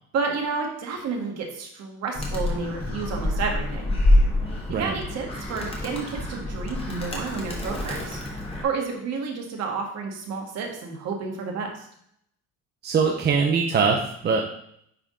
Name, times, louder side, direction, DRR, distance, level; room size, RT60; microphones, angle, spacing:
voice 1, 0.1-4.0 4.7-8.2 8.6-11.8, right 4 dB, 55° right, 1 dB, 1.6 m, -30 dB
Animal, 2.1-8.6, left 1 dB, 20° left, 1.6 m, -26 dB
voice 2, 12.8-14.4, right 5 dB, 35° right, 1 dB, 0.7 m, -22 dB
9.9 x 3.6 x 3.7 m, 0.70 s
cardioid pair, 140°, 31 cm